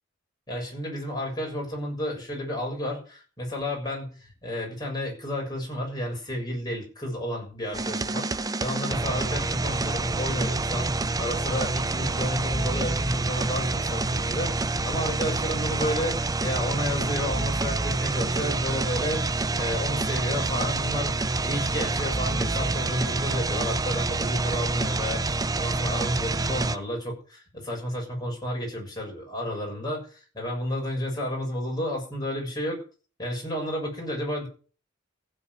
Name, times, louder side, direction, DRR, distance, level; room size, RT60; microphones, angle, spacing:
voice 1, 0.5-32.8 33.2-34.5, equal, 20° left, -2 dB, 7.1 m, -31 dB
sound 1, 7.7-26.8, right 3 dB, 20° right, 0.6 m, -27 dB
15.5 x 5.6 x 9.4 m, 0.39 s
head